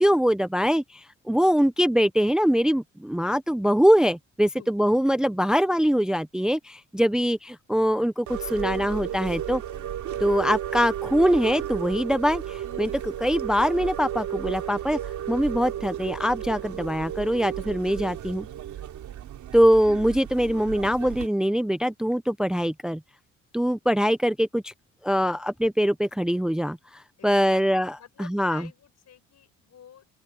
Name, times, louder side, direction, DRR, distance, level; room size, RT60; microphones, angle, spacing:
voice 1, 0.0-9.6 10.2-15.0 15.3-18.5 19.5-23.0 23.5-24.7 25.0-27.9 28.2-28.7, equal, ahead, 0.7 m, -23 dB
sound 1, 8.3-21.3, right 10 dB, 75° right, 3.2 m, -33 dB
voice 2, 27.2-27.6 28.0-30.1, left 9 dB, 60° left, 6.5 m, -48 dB
open air
cardioid pair, 90°, 30 cm